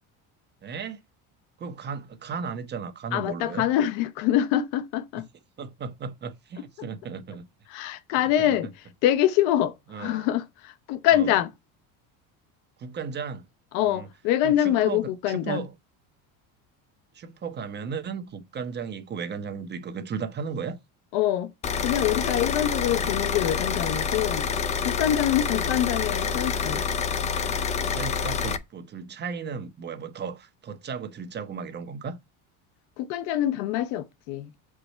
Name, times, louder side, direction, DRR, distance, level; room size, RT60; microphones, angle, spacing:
voice 1, 0.6-1.0 1.6-3.6 5.6-7.4 8.5-8.6 9.9-10.3 11.1-11.3 12.8-13.4 13.8-14.1 14.4-15.7 17.1-20.8 22.9-23.3 25.5-25.6 27.7-32.2, right 6 dB, 25° right, 1.2 m, -35 dB
voice 2, 3.1-5.3 7.7-8.7 9.0-11.5 13.7-15.6 21.1-21.5 21.8-24.5 24.8-26.9 33.0-34.5, left 12 dB, 75° left, 1.0 m, -25 dB
sound 1, 21.6-28.6, left 6 dB, 15° left, 0.4 m, -27 dB
7.8 x 5.0 x 4.4 m
cardioid pair, 160°, 42 cm